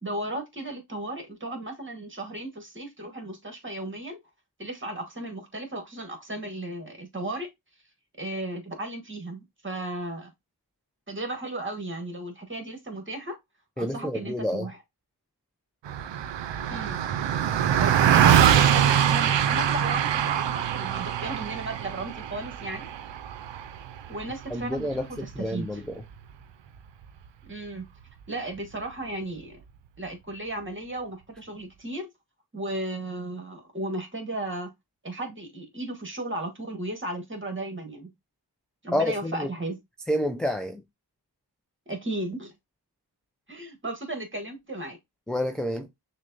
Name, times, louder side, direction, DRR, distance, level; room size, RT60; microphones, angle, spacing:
voice 1, 0.0-4.2 4.6-7.5 8.2-10.3 11.1-13.4 13.8-14.8 16.7-17.0 17.8-22.9 24.1-25.8 27.5-27.8 28.3-29.6 30.0-32.1 32.5-34.7 35.0-38.1 38.8-39.8 41.9-42.5 43.5-45.0, right 2 dB, 25° right, 1.4 m, -35 dB
voice 2, 13.8-14.7 24.5-25.8 38.9-39.5 40.1-40.8 45.3-45.9, left 1 dB, ahead, 0.4 m, -28 dB
Car passing by, 15.9-25.5, right 9 dB, 85° right, 0.5 m, -23 dB
6.2 x 2.3 x 2.5 m
wide cardioid pair, 65°, 43 cm